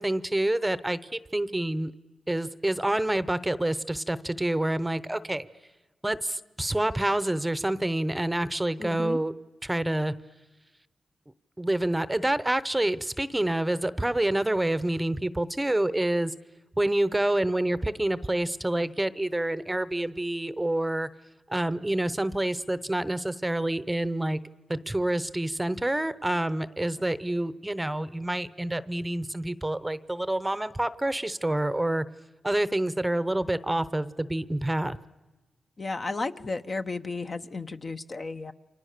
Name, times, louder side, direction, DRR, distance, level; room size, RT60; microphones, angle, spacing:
voice 1, 0.0-1.9 2.3-5.5 6.0-9.3 9.6-10.1 11.6-16.3 16.8-21.1 21.5-24.4 24.7-32.0 32.4-35.0, right 1 dB, 10° right, 15 dB, 0.8 m, -27 dB
voice 2, 8.8-9.2 35.8-38.5, left 3 dB, 40° left, 8 dB, 0.9 m, -33 dB
29.5 x 25.0 x 6.7 m, 1.2 s
cardioid pair, 90°, 0 cm